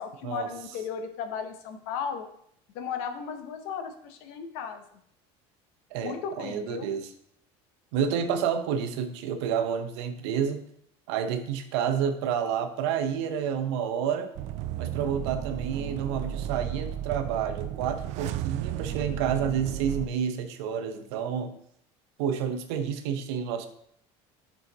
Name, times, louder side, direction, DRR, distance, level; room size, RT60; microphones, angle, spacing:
voice 1, 0.0-2.2 2.7-4.8 6.0-6.9, left 6 dB, 75° left, 7 dB, 0.9 m, -35 dB
voice 2, 5.9-7.1 7.9-10.6 11.1-14.3 14.8-21.5 22.2-23.7, right 8 dB, 90° right, 8 dB, 0.7 m, -29 dB
sound 1, 14.4-20.1, right 11 dB, 55° right, 0.4 m, -34 dB
5.4 x 4.9 x 4.0 m, 0.69 s
cardioid pair, 135°, 14 cm